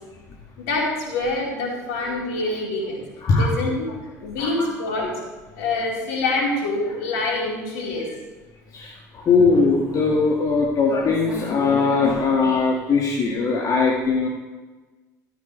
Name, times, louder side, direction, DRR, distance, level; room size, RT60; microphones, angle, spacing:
voice 1, 0.6-3.0 3.4-3.9 4.2-5.2 5.5-8.1, left 2 dB, 65° left, -3 dB, 4.9 m, -25 dB
voice 2, 3.2-4.0 4.4-4.7 5.0-5.1 8.7-14.3, left 4 dB, 40° left, -2 dB, 2.3 m, -20 dB
15.0 x 15.0 x 3.5 m, 1.2 s
figure-of-eight pair, 65°, 9 cm